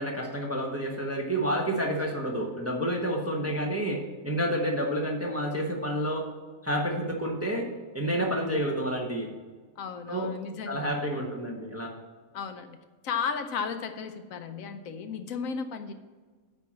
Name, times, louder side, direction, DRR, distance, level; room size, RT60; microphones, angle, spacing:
voice 1, 0.0-6.3 6.6-7.7 7.9-9.3 10.1-10.3 10.7-11.9, equal, 10° right, 0 dB, 0.9 m, -29 dB
voice 2, 9.8-11.3 12.3-12.8 13.0-15.9, left 6 dB, 75° left, 8 dB, 1.0 m, -34 dB
9.3 x 4.5 x 7.3 m, 1.4 s
omnidirectional pair, 1.5 m